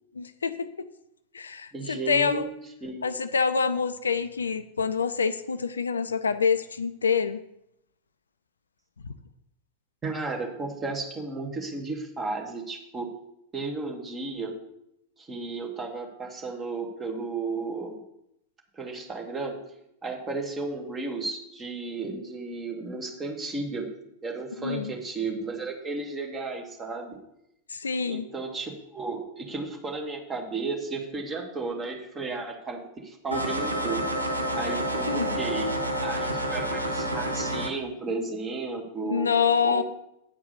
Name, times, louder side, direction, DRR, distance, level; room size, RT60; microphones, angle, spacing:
voice 1, 0.2-0.9 1.3-2.5 3.0-7.4 9.0-9.1 24.6-24.9 27.7-28.3 35.1-35.4 39.0-39.8, left 6 dB, 75° left, 12 dB, 0.5 m, -26 dB
voice 2, 1.7-2.5 2.8-3.2 10.0-13.1 13.5-14.5 15.2-18.0 18.7-19.6 20.0-23.9 24.2-27.2 28.0-34.0 34.5-35.7 36.0-39.3 39.6-39.8, right 3 dB, 20° right, 1 dB, 2.1 m, -33 dB
sound 1, 33.3-37.7, right 1 dB, 80° right, 1.0 m, -29 dB
9.7 x 4.7 x 6.8 m, 0.78 s
figure-of-eight pair, 90°, 0 cm